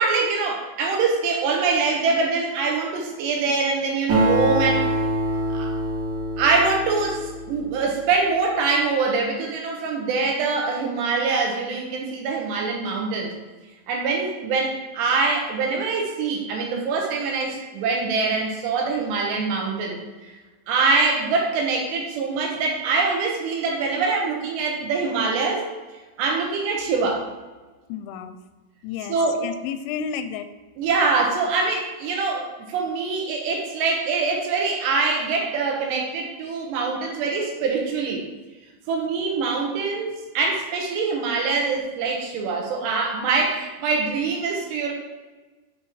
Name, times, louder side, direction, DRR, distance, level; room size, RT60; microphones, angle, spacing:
voice 1, 0.0-4.9 5.5-5.7 6.4-13.3 13.9-20.3 20.7-25.7 26.2-27.3 29.1-29.4 30.8-38.3 38.9-44.9, right 4 dB, 75° right, 1 dB, 2.9 m, -24 dB
Acoustic guitar, 4.1-7.9, right 1 dB, 40° right, 1.8 m, -25 dB
voice 2, 27.9-28.4 28.8-30.5, left 7 dB, 85° left, 9 dB, 2.8 m, -31 dB
7.3 x 4.3 x 4.7 m, 1.2 s
omnidirectional pair, 5.4 m